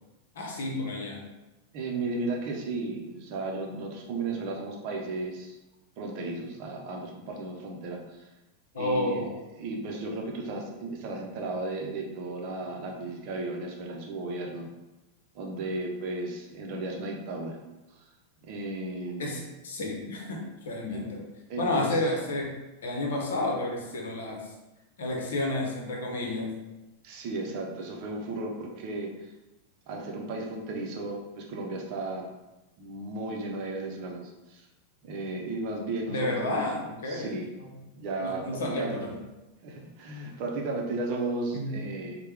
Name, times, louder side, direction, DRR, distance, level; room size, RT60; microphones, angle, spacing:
voice 1, 0.4-1.2 8.7-9.3 19.2-21.2 21.6-22.5 22.8-24.4 25.0-26.5 36.1-37.4 38.2-39.1 41.5-41.8, left 2 dB, 60° left, 0 dB, 0.8 m, -31 dB
voice 2, 1.7-5.6 6.0-8.3 8.7-14.7 15.3-17.6 18.4-19.4 20.9-21.1 21.5-22.0 27.0-29.3 29.9-32.3 32.8-34.7 35.0-36.7 37.0-37.5 37.9-39.0 39.6-42.2, right 2 dB, 45° right, 0 dB, 0.7 m, -34 dB
4.3 x 2.2 x 3.4 m, 1.0 s
figure-of-eight pair, 90°, 0 cm